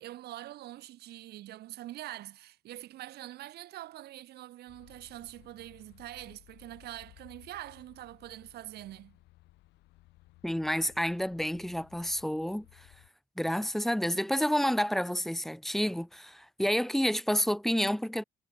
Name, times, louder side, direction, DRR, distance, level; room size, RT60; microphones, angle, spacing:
voice 1, 0.0-9.2, right 14 dB, 75° right, 3.6 m, -44 dB
sound 1, 4.7-13.1, left 19 dB, 90° left, 3.9 m, -59 dB
voice 2, 10.4-12.9 13.4-18.2, equal, ahead, 0.3 m, -29 dB
cardioid pair, 110°, 17 cm